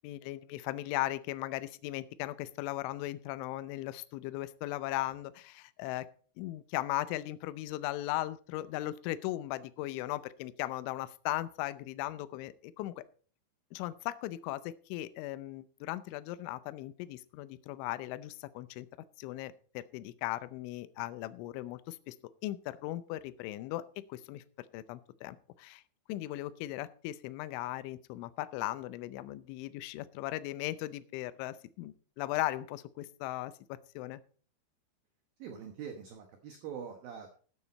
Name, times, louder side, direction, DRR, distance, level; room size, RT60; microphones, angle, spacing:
voice 1, 0.0-6.1 6.4-13.0 13.7-18.9 19.2-22.2 22.4-24.4 24.7-25.8 26.1-33.5 34.0-34.2, left 16 dB, 80° left, 14 dB, 3.0 m, -38 dB
voice 2, 35.4-37.4, right 7 dB, 70° right, 5 dB, 2.3 m, -44 dB
13.5 x 9.2 x 4.1 m, 0.42 s
omnidirectional pair, 5.6 m